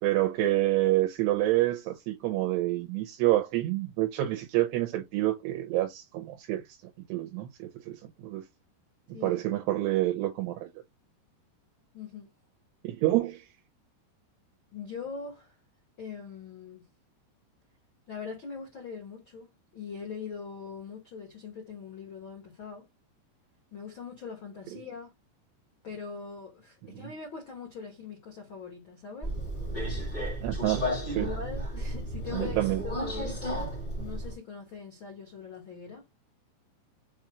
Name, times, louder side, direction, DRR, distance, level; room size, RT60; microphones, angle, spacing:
voice 1, 0.0-6.6 7.1-8.0 8.2-8.4 9.2-10.7 12.8-13.5 26.8-27.1 30.4-31.3 32.3-32.8, right 15 dB, 80° right, 2.7 m, -28 dB
voice 2, 11.9-12.3 14.7-15.5 16.0-16.8 18.1-22.9 23.7-25.1 25.8-29.3 31.1-36.0, left 5 dB, 75° left, 1.1 m, -42 dB
Subway metro underground, 29.2-34.4, equal, 20° left, 1.2 m, -33 dB
7.0 x 2.3 x 3.0 m
omnidirectional pair, 5.0 m